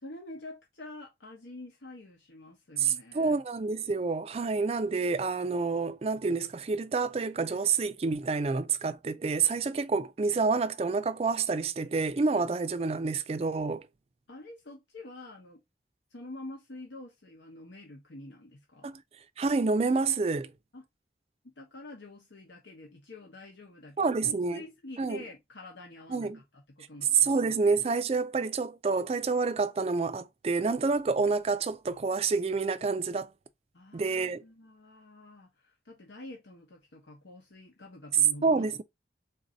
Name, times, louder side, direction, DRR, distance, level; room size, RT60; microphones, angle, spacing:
voice 1, 0.0-3.4 14.3-15.6 16.1-18.9 20.7-20.8 21.4-27.3 33.7-38.8, left 2 dB, 90° left, 1.0 m, -47 dB
voice 2, 2.8-13.9 18.8-19.0 19.4-20.5 24.0-24.6 25.0-25.2 26.1-26.4 27.2-33.3 33.9-34.4 38.4-38.8, right 4 dB, 35° right, 0.3 m, -28 dB
3.9 x 2.7 x 3.8 m
head